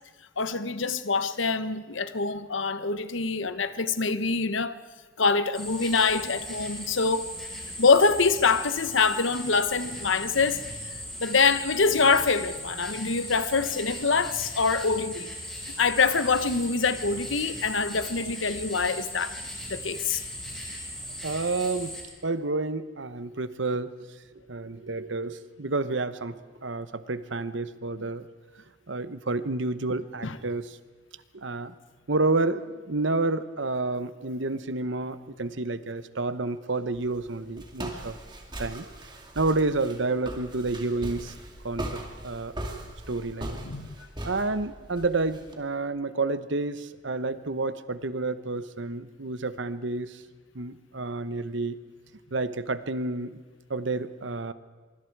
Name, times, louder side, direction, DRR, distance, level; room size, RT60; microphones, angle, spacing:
voice 1, 0.4-4.7 5.2-7.3 7.8-10.6 11.2-15.3 15.8-19.4 19.7-20.2 28.0-28.1 30.2-30.4 43.6-43.9, left 4 dB, 70° left, 1.0 m, -25 dB
sound 1, 5.5-22.0, equal, 5° left, 7.9 m, -38 dB
voice 2, 21.2-21.9 22.2-23.9 24.5-28.3 28.9-30.8 31.3-31.7 32.1-38.2 38.6-38.8 39.3-41.3 41.6-42.5 43.1-43.6 44.2-50.2 50.5-51.8 52.3-53.4 53.7-54.5, right 3 dB, 65° right, 1.0 m, -29 dB
Walk footsteps, 36.9-45.5, right 1 dB, 20° right, 2.4 m, -39 dB
24.5 x 24.0 x 4.8 m
head